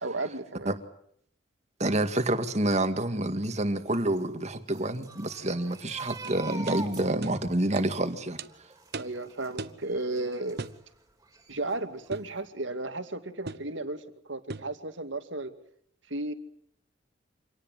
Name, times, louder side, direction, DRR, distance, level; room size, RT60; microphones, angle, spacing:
voice 1, 0.0-0.8 9.0-10.6 11.5-15.5 16.1-16.3, right 2 dB, 85° right, 8 dB, 2.4 m, -34 dB
voice 2, 1.8-8.4, right 1 dB, 35° right, 8 dB, 2.2 m, -28 dB
sound 1, 3.9-10.8 11.2-12.1 12.3-12.5, right 2 dB, 20° right, 4.2 m, -45 dB
sound 2, 6.2-6.3 6.7-6.8 7.2-7.4 7.8-7.9 8.4-8.5 8.9-9.2 9.6-9.8 10.6-10.8 12.1-12.3 13.5-13.7 14.5-14.7, right 3 dB, 60° right, 1.1 m, -38 dB
26.5 x 18.5 x 9.3 m, 0.68 s
head